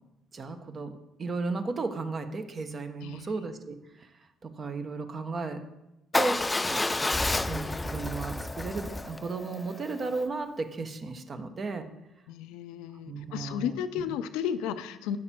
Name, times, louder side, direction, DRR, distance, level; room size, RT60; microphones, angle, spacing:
voice 1, 0.3-0.9 1.2-4.1 4.4-5.6 6.1-7.1 7.5-11.9 13.0-14.1, right 3 dB, 40° right, 8 dB, 1.0 m, -35 dB
voice 2, 3.0-3.3 12.3-15.2, left 9 dB, 80° left, 12 dB, 0.5 m, -33 dB
Motorcycle / Engine starting / Idling, 6.1-10.2, left 2 dB, 15° left, 0.4 m, -30 dB
8.9 x 6.4 x 4.4 m, 0.93 s
supercardioid pair, 60°, 0 cm